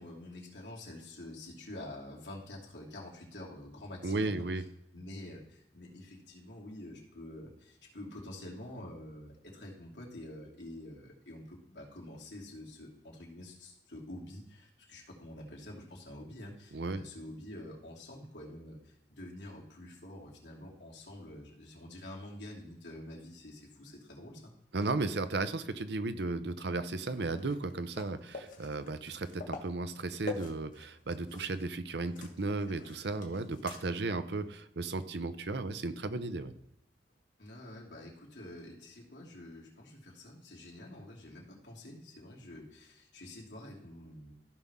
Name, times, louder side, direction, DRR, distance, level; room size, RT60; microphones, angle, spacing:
voice 1, 0.0-4.4 4.9-24.5 32.7-32.9 37.4-44.3, left 1 dB, 80° left, -3 dB, 2.8 m, -47 dB
voice 2, 4.0-4.6 16.7-17.0 24.7-36.5, right 3 dB, 70° right, 11 dB, 0.7 m, -35 dB
sound 1, 27.1-31.7 32.0-34.1 34.5-34.6 37.1-37.2, left 3 dB, 50° left, 1.3 m, -46 dB
14.5 x 5.6 x 3.6 m, 0.79 s
head